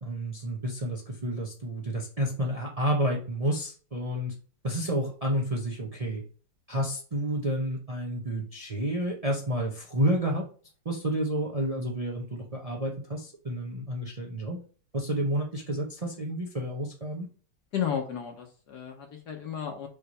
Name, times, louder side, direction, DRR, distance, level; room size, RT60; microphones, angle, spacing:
voice 1, 0.0-4.3 4.6-6.2 6.7-10.4 10.8-14.6 14.9-17.3, right 1 dB, 65° right, 0 dB, 0.3 m, -30 dB
voice 2, 17.7-19.9, left 8 dB, 55° left, 3 dB, 1.3 m, -33 dB
5.7 x 3.2 x 5.5 m, 0.39 s
omnidirectional pair, 2.4 m